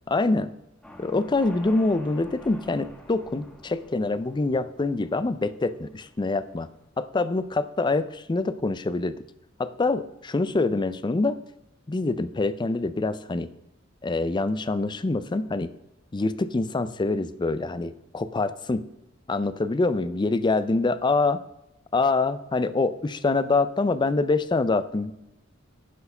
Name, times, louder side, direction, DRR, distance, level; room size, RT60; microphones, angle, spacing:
voice 1, 0.1-0.5 1.0-6.7 7.0-9.2 9.6-11.4 11.9-13.5 14.0-15.7 16.1-18.8 19.3-21.4 21.9-25.1, left 3 dB, 20° left, 14 dB, 0.4 m, -25 dB
sound 1, 0.8-6.9, left 1 dB, 5° left, 1.2 m, -48 dB
11.0 x 4.6 x 5.4 m, 0.89 s
head